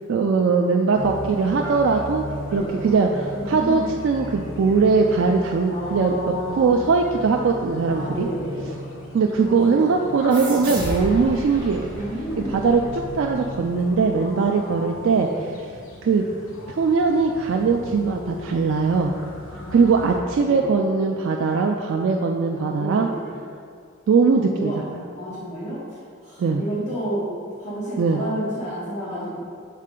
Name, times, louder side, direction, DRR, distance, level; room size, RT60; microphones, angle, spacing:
voice 1, 0.1-2.2 2.5-8.3 9.1-11.9 12.4-15.3 16.0-16.3 16.7-19.1 19.7-23.1 24.1-25.0 26.4-26.6 28.0-28.2, right 4 dB, 60° right, 2 dB, 0.3 m, -20 dB
sound 1, 0.9-20.2, left 1 dB, 65° left, 1.0 m, -38 dB
voice 2, 3.4-3.9 5.7-6.7 7.8-8.8 9.4-9.7 10.0-10.1 10.6-11.2 11.9-12.6 14.1-15.4 17.9-18.7 19.5-20.0 20.4-20.6 22.5-23.3 24.5-24.8 25.2-25.8 26.2-27.3 27.6-29.4, equal, 35° left, -9 dB, 1.0 m, -31 dB
sound 2, 10.3-13.5, right 1 dB, 20° right, 1.3 m, -33 dB
6.5 x 4.2 x 3.7 m, 2.2 s
head